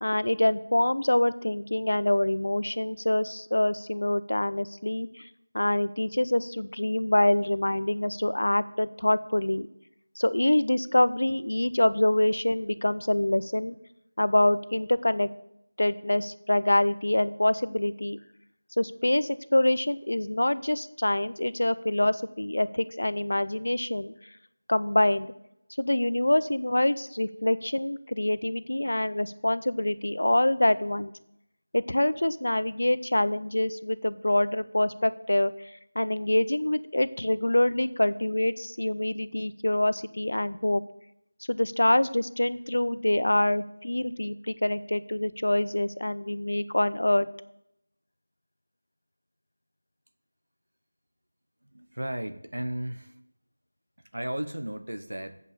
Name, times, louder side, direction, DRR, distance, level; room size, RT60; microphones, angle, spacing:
voice 1, 0.0-5.3 5.5-9.7 10.1-13.8 14.2-15.3 15.8-18.2 18.8-24.1 24.7-25.3 25.8-31.1 31.7-40.8 41.5-47.3, left 1 dB, 60° left, 15 dB, 0.5 m, -25 dB
voice 2, 51.6-53.2 54.1-55.4, right 1 dB, 80° right, 9 dB, 1.0 m, -34 dB
8.4 x 5.3 x 7.6 m, 0.80 s
figure-of-eight pair, 180°, 0 cm